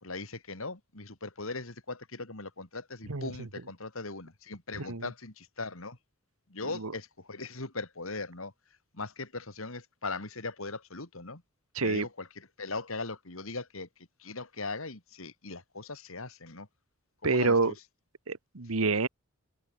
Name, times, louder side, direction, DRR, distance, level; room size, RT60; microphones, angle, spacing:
voice 1, 0.0-6.0 6.5-8.5 8.9-11.4 11.8-13.9 14.2-16.7 17.2-17.7, left 3 dB, 70° left, 3.1 m, -39 dB
voice 2, 3.1-3.5 4.8-5.1 6.7-6.9 11.7-12.1 17.2-17.7 18.3-19.1, right 3 dB, 80° right, 1.4 m, -28 dB
open air
head